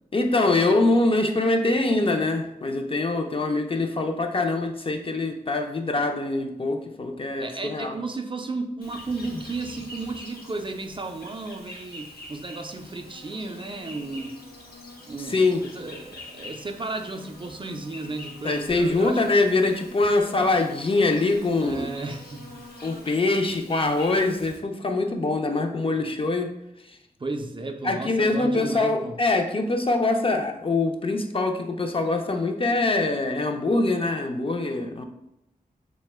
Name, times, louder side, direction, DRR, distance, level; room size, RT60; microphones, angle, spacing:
voice 1, 0.1-8.0 15.3-15.7 18.4-21.9 22.8-26.5 26.8-27.0 27.8-35.0, left 2 dB, 35° left, 5 dB, 0.4 m, -24 dB
voice 2, 7.4-14.4 15.0-19.2 21.6-22.6 27.2-29.1, right 3 dB, 35° right, 5 dB, 0.3 m, -34 dB
Insect, 8.8-24.6, left 1 dB, 85° left, 0.6 m, -44 dB
2.7 x 2.1 x 3.2 m, 0.83 s
cardioid pair, 45°, 16 cm